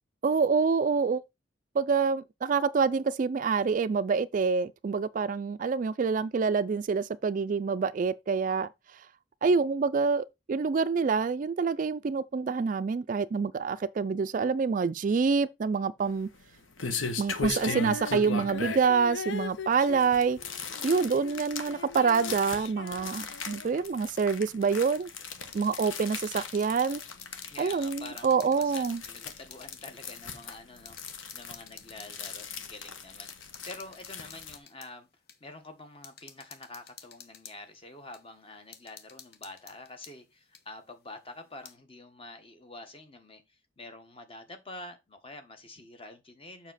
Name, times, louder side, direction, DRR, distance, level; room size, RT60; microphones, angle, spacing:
voice 1, 0.2-1.2 1.7-9.1 9.4-16.3 17.2-20.4 20.8-25.1 25.5-27.0 27.6-29.0, right 5 dB, 40° right, 0.3 m, -27 dB
sound 1, 16.0-34.6, left 5 dB, 85° left, 1.2 m, -39 dB
Female singing, 17.6-21.4 21.7-23.8, left 5 dB, 70° left, 0.5 m, -40 dB
sound 2, 25.5-27.5 27.8-29.8 30.4-30.5 30.9-32.5 33.3-34.9 35.3-35.4 36.0-37.6 38.1-38.2 38.7-40.1 40.5-40.6 41.4-41.7, left 7 dB, 55° left, 1.0 m, -50 dB
voice 2, 27.5-35.1 35.4-46.7, left 2 dB, 30° left, 1.3 m, -47 dB
7.2 x 5.7 x 4.1 m
head